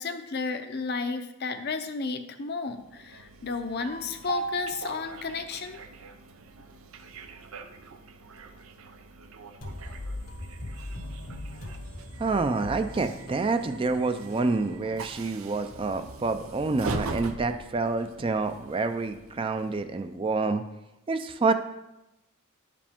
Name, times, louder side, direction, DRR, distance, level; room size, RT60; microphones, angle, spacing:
voice 1, 0.0-5.8, left 4 dB, 50° left, 7 dB, 0.6 m, -33 dB
Train, 2.8-20.1, right 3 dB, 90° right, 0.6 m, -41 dB
sound 1, 9.6-15.2, left 1 dB, 80° left, 1.3 m, -40 dB
voice 2, 12.2-20.6 21.1-21.5, right 3 dB, 25° right, 8 dB, 0.4 m, -27 dB
10.5 x 5.0 x 3.6 m, 0.92 s
head